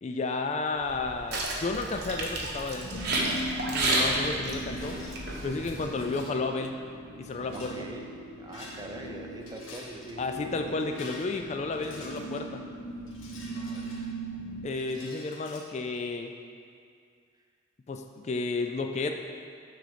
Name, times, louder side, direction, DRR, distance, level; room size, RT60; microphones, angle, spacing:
voice 1, 0.0-3.0 3.7-5.0 5.4-6.7 7.2-7.7 10.2-12.6 14.6-16.3 17.9-19.1, left 3 dB, 35° left, 5 dB, 0.3 m, -32 dB
sound 1, 0.8-5.9, right 2 dB, 55° right, 1.0 m, -31 dB
sound 2, 2.7-14.7, right 1 dB, 65° left, 0.7 m, -40 dB
voice 2, 3.5-3.8 7.5-8.1 8.4-10.2 13.4-14.1, right 1 dB, 20° right, 3 dB, 0.5 m, -44 dB
Rattle, 4.6-5.2 5.8-6.4 7.3-7.8 8.4-9.1 9.4-10.1 10.7-12.5 13.1-14.4 14.7-15.6, left 2 dB, 85° left, 1.4 m, -48 dB
9.2 x 3.9 x 5.0 m, 2.2 s
head